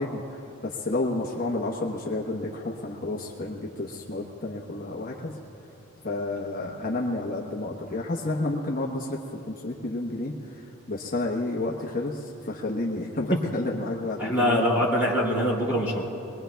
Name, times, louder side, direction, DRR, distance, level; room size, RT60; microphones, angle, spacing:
voice 1, 0.0-5.3 6.0-9.2 9.5-14.9, left 2 dB, 40° left, -2 dB, 1.0 m, -31 dB
voice 2, 14.2-16.0, equal, 10° right, -5 dB, 2.5 m, -23 dB
23.5 x 20.5 x 2.3 m, 3.0 s
head